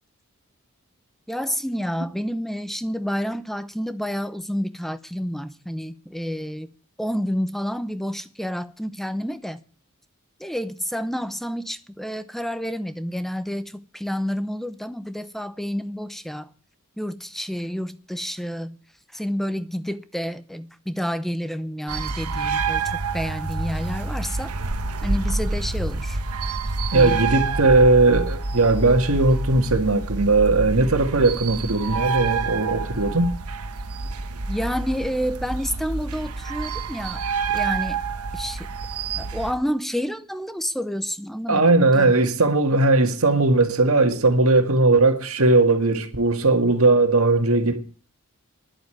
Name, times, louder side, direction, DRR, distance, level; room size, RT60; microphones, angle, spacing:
voice 1, 1.3-6.7 7.0-9.6 10.4-16.5 17.0-18.8 19.1-24.6 25.0-26.2 26.9-27.2 34.5-38.0 38.3-38.7 39.2-42.1, equal, ahead, 0.8 m, -29 dB
sound 1, 21.9-39.5, right 4 dB, 85° right, 1.2 m, -28 dB
voice 2, 26.9-33.3 41.5-47.8, right 2 dB, 70° right, 1.9 m, -18 dB
11.0 x 8.1 x 9.0 m
head